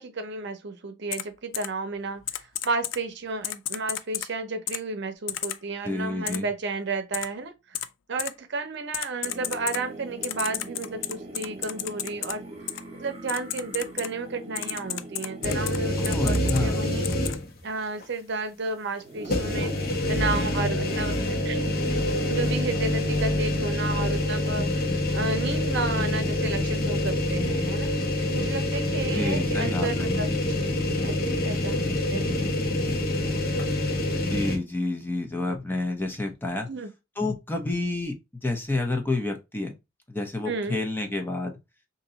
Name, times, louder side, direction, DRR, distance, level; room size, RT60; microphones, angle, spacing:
voice 1, 0.0-7.5 8.1-12.4 12.9-17.1 17.6-21.2 21.4-21.8 22.3-27.9 28.3-30.7 31.0-32.6 36.7-36.9 40.5-40.8, right 3 dB, 65° right, 0.7 m, -32 dB
Typing, 1.1-1.2 1.5-1.7 2.3-3.0 3.4-4.3 4.7-4.8 5.3-5.6 6.3-6.4 7.1-7.3 7.7-7.9 8.2-8.3 8.9-9.8 10.2-12.3 12.7-12.8 13.3-14.1 14.6-15.8 16.0-16.6 17.0-17.4, left 12 dB, 85° left, 0.4 m, -31 dB
voice 2, 5.8-6.5 16.0-16.8 29.1-30.1 34.3-36.7 37.2-38.1 38.4-39.7 40.1-41.6, left 2 dB, 10° left, 0.7 m, -29 dB
sound 1, 9.2-16.9 19.0-24.5, right 2 dB, 35° right, 1.1 m, -42 dB
sound 2, 15.4-17.6 18.0-18.1 19.2-34.6, left 1 dB, 50° left, 0.9 m, -26 dB
2.9 x 2.7 x 3.9 m
head